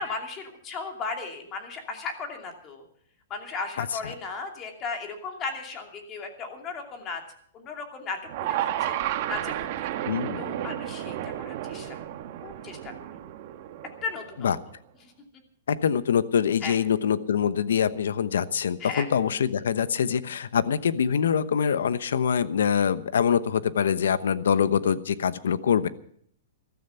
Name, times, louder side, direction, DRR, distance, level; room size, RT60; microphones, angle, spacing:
voice 1, 0.0-2.8 3.3-7.2 7.5-8.2 8.5-9.0 9.3-9.7 10.4-12.0 12.4-12.9 14.0-14.5 15.0-15.1 16.6-16.7 18.8-19.1, left 4 dB, 25° left, 3 dB, 2.6 m, -35 dB
sound 1, 8.3-14.5, right 12 dB, 45° right, 1.3 m, -32 dB
voice 2, 10.0-10.4 14.4-14.6 15.7-25.9, left 7 dB, 80° left, 14 dB, 1.0 m, -24 dB
14.5 x 13.5 x 5.7 m, 0.64 s
hypercardioid pair, 155°, 0 cm